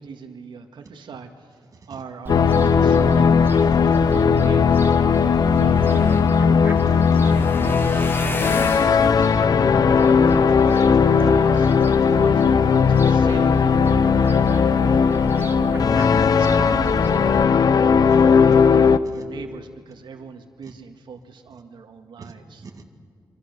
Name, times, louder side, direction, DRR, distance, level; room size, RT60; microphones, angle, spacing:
voice 1, 0.0-1.6 1.9-3.5 3.8-6.6 7.1-10.5 11.2-11.7 12.1-15.8 16.3-17.9 18.4-22.7, right 5 dB, 80° right, 5 dB, 1.8 m, -39 dB
sound 1, 2.3-19.0, left 6 dB, 55° left, 0.7 m, -17 dB
Fowl, 2.3-17.4, right 2 dB, 25° right, 1.5 m, -31 dB
sound 2, 5.4-11.5 12.1-12.5 12.9-13.1 13.4-13.5, left 2 dB, 30° left, 1.5 m, -35 dB
voice 2, 10.7-11.0 12.1-12.2 16.0-16.4 19.1-19.3 20.6-20.7 22.2-22.3 22.6-22.8, right 4 dB, 45° right, 4 dB, 1.9 m, -44 dB
26.5 x 25.5 x 6.8 m, 2.1 s
wide cardioid pair, 150°, 8 cm